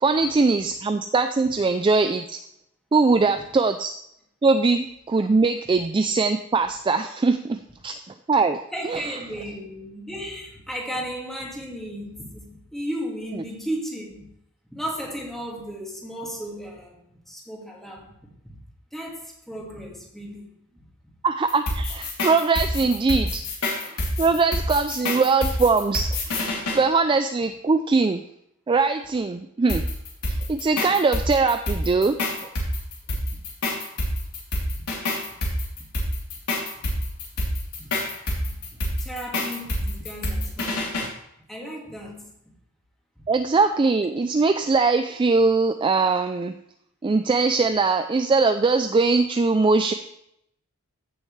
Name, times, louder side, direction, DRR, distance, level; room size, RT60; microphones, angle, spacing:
voice 1, 0.0-2.4 2.9-3.9 4.4-7.9 8.3-8.6 8.9-9.1 21.2-23.4 23.8-28.2 28.7-29.8 30.3-32.2 43.3-46.5 47.0-49.9, right 4 dB, 20° right, 8 dB, 0.3 m, -21 dB
voice 2, 8.7-14.3 14.7-18.6 18.9-21.1 24.2-24.3 34.7-34.9 35.4-35.8 36.7-37.0 37.8-37.9 38.5-41.1 41.5-42.2, equal, ahead, -2 dB, 2.2 m, -35 dB
sound 1, 21.5-26.8 29.7-41.1, left 1 dB, 90° left, 3.0 m, -27 dB
15.0 x 6.5 x 3.2 m, 0.77 s
head